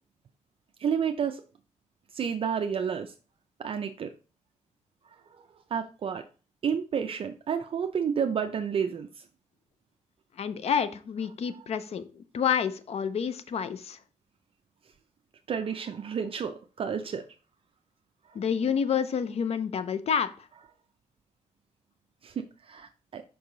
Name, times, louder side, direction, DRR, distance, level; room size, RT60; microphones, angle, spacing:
voice 1, 0.8-1.4 2.1-3.1 3.6-4.1 5.3-5.4 5.7-6.2 6.6-9.2 15.5-17.2 18.3-18.4 22.2-23.2, right 7 dB, 45° right, 0.5 m, -30 dB
voice 2, 10.4-14.0 18.3-20.3, left 7 dB, 55° left, 0.6 m, -29 dB
5.3 x 4.7 x 3.8 m
cardioid pair, 110°, 13 cm